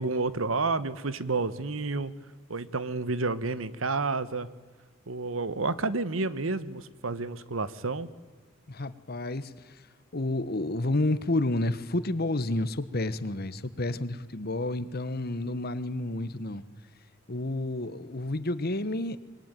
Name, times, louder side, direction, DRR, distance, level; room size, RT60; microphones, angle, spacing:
voice 1, 0.0-2.1 2.5-4.5 5.1-8.1, right 3 dB, 80° right, 15 dB, 1.2 m, -30 dB
voice 2, 8.7-9.8 10.1-16.6 17.3-19.2, left 2 dB, 50° left, 14 dB, 1.2 m, -30 dB
25.5 x 22.5 x 9.3 m, 1.3 s
head